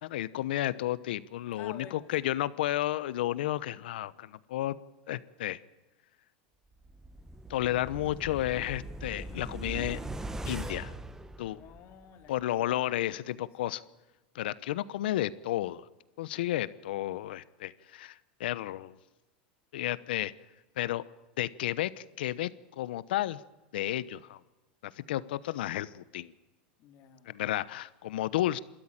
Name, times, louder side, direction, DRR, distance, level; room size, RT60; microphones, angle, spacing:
voice 1, 0.0-4.8 5.1-5.6 7.5-10.0 10.4-10.9 11.4-11.6 12.3-13.8 14.3-15.8 16.2-18.9 19.7-20.3 20.8-21.0 21.4-22.5 22.8-23.4 23.7-24.4 24.8-26.3 27.3-28.6, left 14 dB, 80° left, 17 dB, 1.0 m, -32 dB
voice 2, 1.5-2.3 11.5-12.9 26.8-27.3, left 10 dB, 45° left, 6 dB, 3.0 m, -50 dB
sound 1, 6.8-12.0 12.4-12.5, right 2 dB, 10° right, 1.2 m, -41 dB
28.0 x 13.0 x 9.0 m, 1.1 s
supercardioid pair, 120°, 5 cm